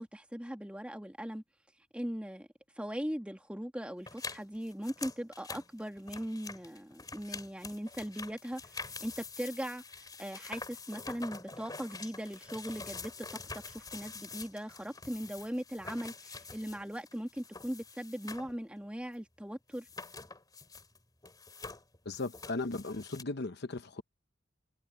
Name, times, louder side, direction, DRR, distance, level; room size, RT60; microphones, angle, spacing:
voice 1, 0.0-1.4 1.9-2.5 2.8-9.8 10.2-13.1 13.7-19.9, equal, 5° right, 2.0 m, -39 dB
sound 1, 4.1-18.6 18.8-18.9 19.7-21.0 21.2-23.2, left 4 dB, 20° left, 3.3 m, -46 dB
voice 2, 22.0-24.0, left 2 dB, 60° left, 0.9 m, -37 dB
head